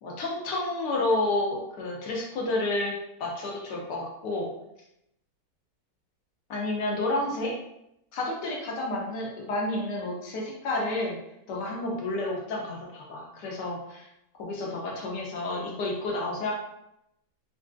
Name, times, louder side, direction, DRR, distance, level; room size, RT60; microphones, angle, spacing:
voice 1, 0.0-4.5 6.5-7.5 8.1-11.2 11.5-14.1 14.4-16.5, left 2 dB, 80° left, -2 dB, 1.4 m, -30 dB
3.4 x 2.5 x 2.3 m, 0.81 s
omnidirectional pair, 1.8 m